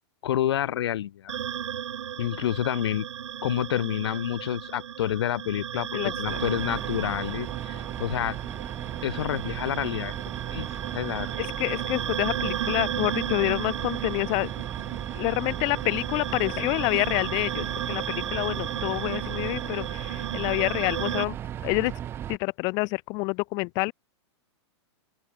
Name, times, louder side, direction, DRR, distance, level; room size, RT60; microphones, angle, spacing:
voice 1, 0.2-1.4 2.2-3.1 3.4-8.4 9.0-10.1 10.5-10.7 10.9-11.3, left 11 dB, 60° left, 7.6 m, -28 dB
sound 1, 1.3-21.2, right 9 dB, 80° right, 7.2 m, -34 dB
sound 2, 6.2-22.4, right 11 dB, 15° right, 1.7 m, -36 dB
voice 2, 11.4-14.5 15.1-21.4 21.6-21.9 22.3-23.9, left 29 dB, 25° left, 1.6 m, -28 dB
open air
supercardioid pair, 175°, 15 cm